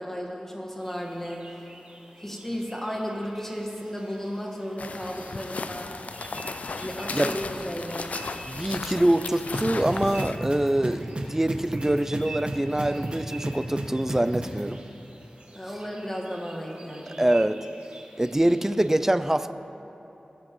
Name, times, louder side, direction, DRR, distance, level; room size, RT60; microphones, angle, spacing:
voice 1, 0.0-1.6 2.2-5.9 6.8-8.1 15.5-17.3, equal, 15° left, -1 dB, 1.6 m, -34 dB
sound 1, 0.8-18.9, right 2 dB, 60° right, 1.7 m, -47 dB
sound 2, 4.8-10.4, left 3 dB, 70° left, 0.4 m, -35 dB
voice 2, 8.5-11.0 11.3-14.8 17.2-17.6 18.2-19.5, right 1 dB, 15° right, 12 dB, 0.4 m, -24 dB
sound 3, 9.5-14.6, right 1 dB, 45° right, 1.3 m, -31 dB
18.5 x 7.4 x 3.1 m, 3.0 s
wide cardioid pair, 50°, 3 cm